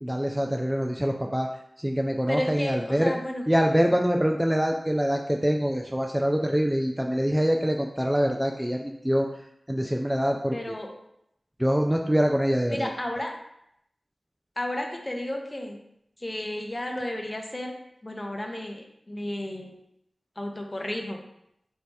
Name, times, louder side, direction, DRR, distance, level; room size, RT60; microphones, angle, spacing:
voice 1, 0.0-1.5 1.8-3.1 3.5-9.3 9.7-10.8 11.6-12.9, equal, 10° right, 2 dB, 0.3 m, -25 dB
voice 2, 2.3-3.4 10.5-11.0 12.7-13.3 14.6-15.8 16.2-17.7 18.0-19.7 20.4-21.2, left 1 dB, 30° left, 2 dB, 0.6 m, -32 dB
3.2 x 2.7 x 4.6 m, 0.77 s
wide cardioid pair, 70°, 0 cm